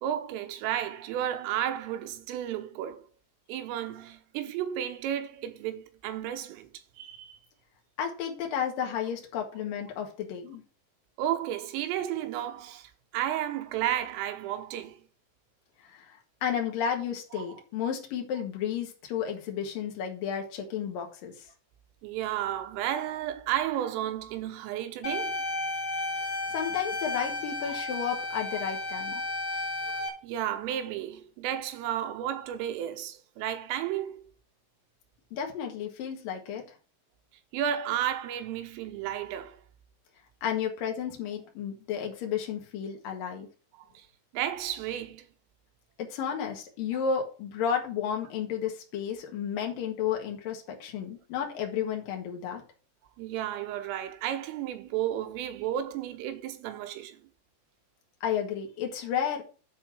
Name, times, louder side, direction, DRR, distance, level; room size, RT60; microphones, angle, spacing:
voice 1, 0.0-3.1 3.5-6.7 7.0-7.4 11.2-15.0 17.3-17.4 22.0-25.3 29.1-29.2 29.5-29.6 29.9-34.3 37.5-39.6 44.3-45.3 53.2-57.2, right 11 dB, 80° right, 3.5 m, -33 dB
voice 2, 8.0-10.6 15.8-21.5 26.5-29.2 35.3-36.6 40.4-43.5 46.0-52.6 58.2-59.4, left 8 dB, 60° left, 2.7 m, -32 dB
sound 1, 25.0-30.1, left 2 dB, 25° left, 2.1 m, -33 dB
10.5 x 4.3 x 6.0 m
omnidirectional pair, 6.0 m